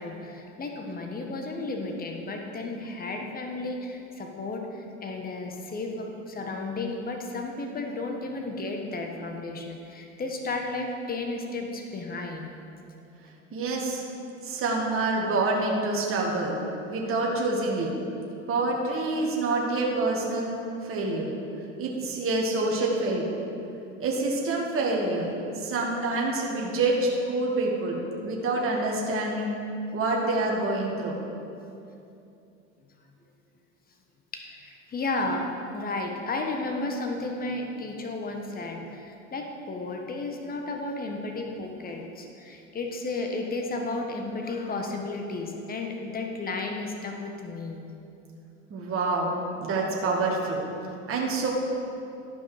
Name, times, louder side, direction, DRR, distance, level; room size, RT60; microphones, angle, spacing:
voice 1, 0.0-12.5 15.1-15.2 34.3-47.8, left 2 dB, 25° left, 2 dB, 1.2 m, -33 dB
voice 2, 13.5-14.0 14.4-16.6 16.9-17.9 18.5-20.5 20.8-21.3 21.8-23.3 24.0-25.3 25.6-28.0 28.2-29.6 29.9-31.2 48.7-50.6 51.1-51.5, right 2 dB, 35° right, -2 dB, 1.7 m, -27 dB
12.5 x 5.3 x 4.9 m, 2.7 s
hypercardioid pair, 80°, 36 cm